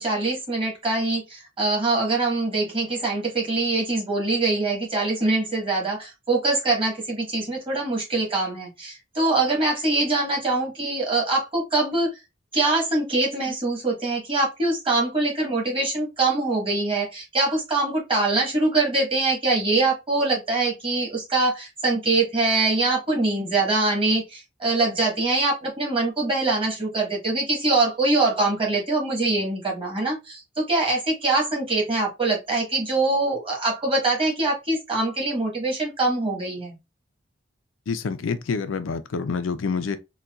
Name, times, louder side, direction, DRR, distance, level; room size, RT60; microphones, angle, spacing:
voice 1, 0.0-12.2 12.5-36.7, right 2 dB, 30° right, 1.3 m, -23 dB
voice 2, 37.9-40.0, left 5 dB, 85° left, 0.4 m, -27 dB
4.0 x 2.3 x 2.3 m
head